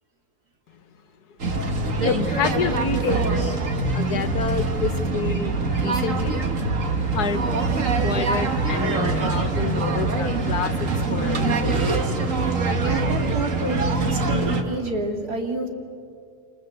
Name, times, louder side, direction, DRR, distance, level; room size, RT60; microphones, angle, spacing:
sound 1, 1.4-14.6, right 3 dB, 55° right, 2.0 m, -24 dB
voice 1, 2.0-3.6 3.9-6.4 7.1-7.4 8.0-11.8, left 6 dB, 85° left, 10 dB, 1.7 m, -28 dB
voice 2, 12.9-15.7, right 2 dB, 80° right, 2 dB, 3.0 m, -29 dB
27.5 x 27.0 x 7.9 m, 2.3 s
omnidirectional pair, 1.6 m